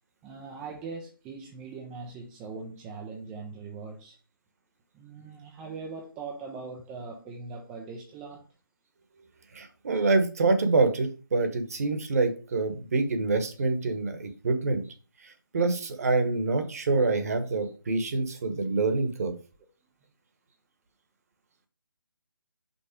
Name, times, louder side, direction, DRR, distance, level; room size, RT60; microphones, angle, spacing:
voice 1, 0.2-4.2 4.9-8.5, right 4 dB, 5° right, 0.3 m, -41 dB
voice 2, 9.5-14.8 15.2-19.3, right 3 dB, 45° right, 1.1 m, -26 dB
5.4 x 4.1 x 4.9 m
figure-of-eight pair, 150°, 12 cm